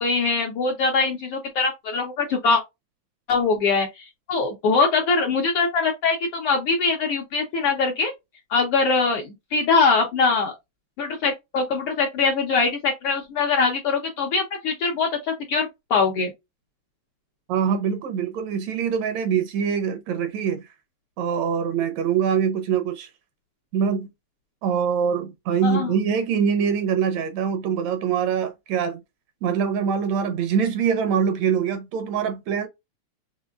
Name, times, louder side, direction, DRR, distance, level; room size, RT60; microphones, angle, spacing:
voice 1, 0.0-2.6 3.3-8.1 8.5-10.5 11.0-16.3 25.6-25.9, left 4 dB, 65° left, 1.5 m, -22 dB
voice 2, 17.5-20.7 21.2-23.1 23.7-24.1 24.6-29.0 29.4-32.7, right 7 dB, 75° right, 1.9 m, -24 dB
5.4 x 2.7 x 2.3 m
omnidirectional pair, 3.4 m